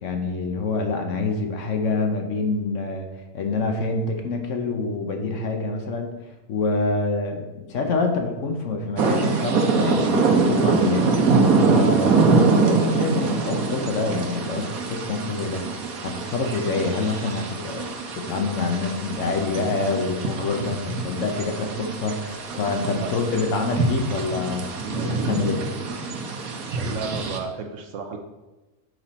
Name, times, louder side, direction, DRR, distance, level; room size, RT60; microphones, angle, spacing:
voice 1, 0.0-3.1 3.3-6.1 6.5-7.4 7.7-11.1 11.6-25.6, left 3 dB, 65° left, 4 dB, 1.1 m, -26 dB
sound 1, 9.0-27.4, right 4 dB, 80° right, 1.3 m, -24 dB
voice 2, 22.9-23.5 26.7-28.2, right 5 dB, 65° right, 4 dB, 1.0 m, -34 dB
5.9 x 5.7 x 4.3 m, 1.1 s
omnidirectional pair, 1.5 m